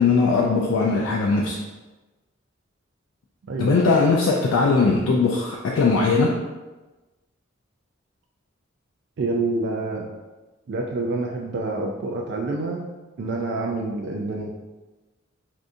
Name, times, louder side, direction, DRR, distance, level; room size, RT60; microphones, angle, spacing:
voice 1, 0.0-1.6 3.6-6.4, left 4 dB, 80° left, -2 dB, 0.4 m, -20 dB
voice 2, 3.5-3.9 9.2-10.1 10.7-12.8 13.2-14.5, right 3 dB, 60° right, 0 dB, 0.3 m, -27 dB
2.6 x 2.5 x 3.5 m, 1.2 s
head